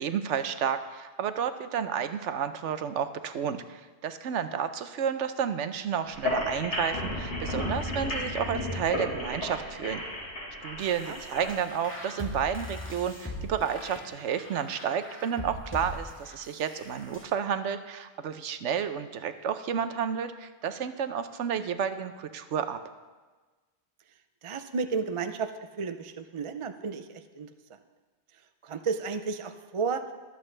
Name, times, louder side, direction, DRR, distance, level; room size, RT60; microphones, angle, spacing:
voice 1, 0.0-10.0 10.6-22.8, right 8 dB, 90° right, 10 dB, 1.0 m, -31 dB
sound 1, 6.1-11.5, left 1 dB, 80° left, 5.5 m, -33 dB
sound 2, 10.8-17.2, left 1 dB, 10° left, 1.9 m, -41 dB
voice 2, 24.4-25.5 25.8-27.5 28.6-30.1, right 5 dB, 45° right, 8 dB, 0.4 m, -32 dB
23.5 x 8.2 x 3.3 m, 1.3 s
omnidirectional pair, 1.2 m